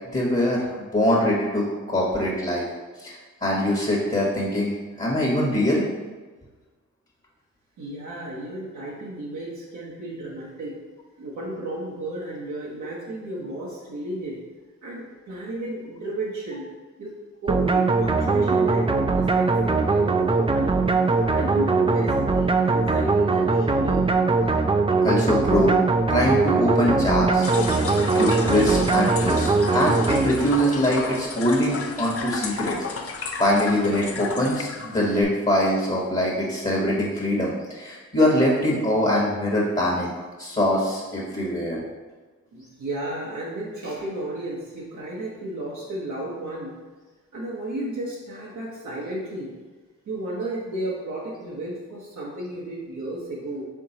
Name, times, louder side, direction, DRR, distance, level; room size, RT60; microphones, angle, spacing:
voice 1, 0.1-0.6 0.9-2.7 3.0-4.7 5.0-5.8 25.0-25.8 26.1-27.5 28.1-32.8 33.4-40.1 40.4-41.8, left 1 dB, 25° left, -3 dB, 1.1 m, -23 dB
voice 2, 7.8-10.8 11.2-14.4 14.8-16.7 17.0-20.8 21.2-24.1 42.5-46.8 47.3-49.5 50.1-53.6, right 1 dB, 70° right, -5 dB, 0.9 m, -33 dB
sound 1, 17.5-30.8, right 3 dB, 20° right, 0.3 m, -21 dB
sound 2, 27.4-35.2, left 4 dB, 50° left, 0.6 m, -32 dB
4.6 x 3.7 x 2.8 m, 1.3 s
supercardioid pair, 45°, 30 cm